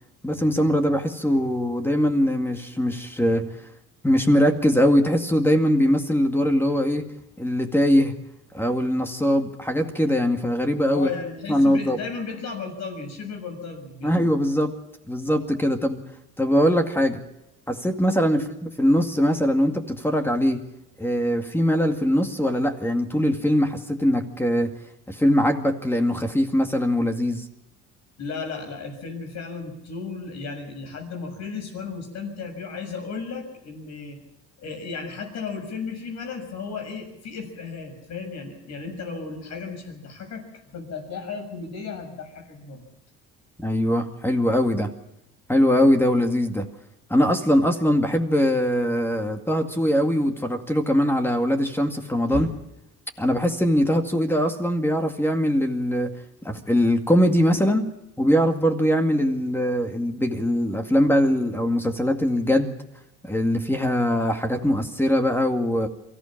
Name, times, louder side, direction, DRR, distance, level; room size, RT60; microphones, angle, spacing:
voice 1, 0.2-3.5 4.0-7.1 7.4-8.1 8.5-11.1 11.5-12.0 14.0-14.8 15.1-16.0 16.4-17.2 17.7-18.4 18.8-20.6 21.0-24.7 25.1-27.5 43.6-44.9 45.5-46.7 47.1-52.5 53.2-56.1 56.4-57.9 58.2-62.8 63.2-65.9, equal, 5° left, 5 dB, 2.1 m, -21 dB
voice 2, 10.9-14.2 18.3-18.5 28.2-34.2 34.6-40.4 40.7-42.8 52.3-52.5, left 5 dB, 60° left, 5 dB, 6.8 m, -34 dB
23.5 x 15.0 x 7.3 m, 0.85 s
cardioid pair, 95°, 30 cm